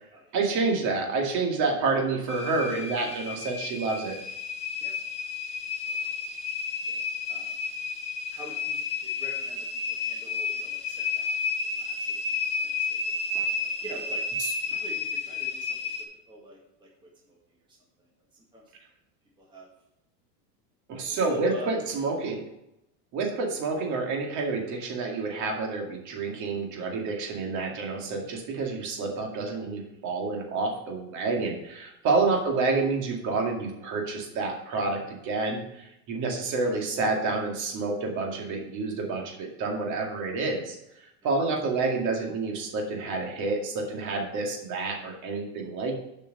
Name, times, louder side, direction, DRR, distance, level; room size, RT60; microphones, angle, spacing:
voice 1, 0.3-4.2 13.3-13.5 14.4-14.8 20.9-22.4 23.1-40.8 41.2-45.9, right 3 dB, 40° right, 1 dB, 2.3 m, -29 dB
sound 1, 2.3-16.0, left 4 dB, 15° left, 1.2 m, -32 dB
voice 2, 7.3-7.6 8.3-11.4 11.6-12.2 12.6-13.0 13.3-14.2 14.7-15.9 16.3-17.4 17.7-18.1 18.3-18.6 19.4-19.7 21.1-21.7 22.0-22.1 41.2-41.3, equal, 10° right, -3 dB, 2.0 m, -46 dB
7.6 x 5.5 x 6.6 m, 0.83 s
supercardioid pair, 150°, 45 cm